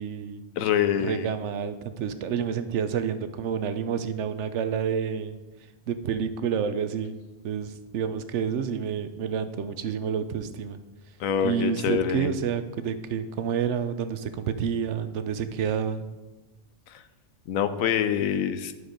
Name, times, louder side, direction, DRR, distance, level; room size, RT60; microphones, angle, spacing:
voice 1, 0.0-0.4 1.0-5.4 5.9-7.1 7.4-10.8 11.4-16.1, right 7 dB, 65° right, 10 dB, 0.9 m, -29 dB
voice 2, 0.6-1.3 11.2-12.3 16.9-17.0 17.5-18.7, left 8 dB, 85° left, 11 dB, 1.0 m, -25 dB
10.5 x 4.8 x 5.1 m, 1.1 s
omnidirectional pair, 1.4 m